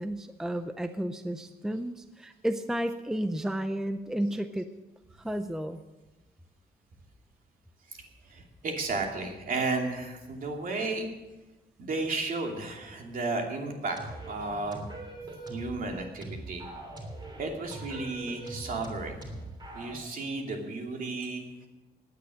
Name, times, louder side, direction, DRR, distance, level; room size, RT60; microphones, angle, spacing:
voice 1, 0.0-4.7 5.2-5.8, right 1 dB, 5° right, 9 dB, 0.5 m, -32 dB
voice 2, 8.3-11.1 11.8-14.9 15.5-16.7 17.4-19.5 19.7-21.4, right 3 dB, 55° right, 2 dB, 2.9 m, -33 dB
sound 1, 13.9-20.0, right 2 dB, 25° right, 3.3 m, -42 dB
17.5 x 10.5 x 6.3 m, 1.1 s
wide cardioid pair, 150°, 17 cm